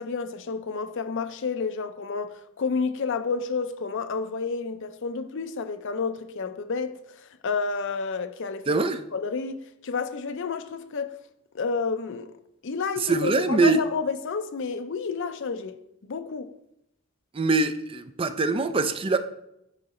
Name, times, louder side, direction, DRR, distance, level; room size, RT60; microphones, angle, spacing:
voice 1, 0.0-8.8 9.1-11.1 11.5-12.3 12.6-15.8 16.0-16.5, left 5 dB, 55° left, 0.5 m, -30 dB
voice 2, 8.7-9.0 13.0-13.8 17.3-19.2, right 3 dB, 25° right, 0.4 m, -23 dB
10.0 x 3.9 x 4.2 m
head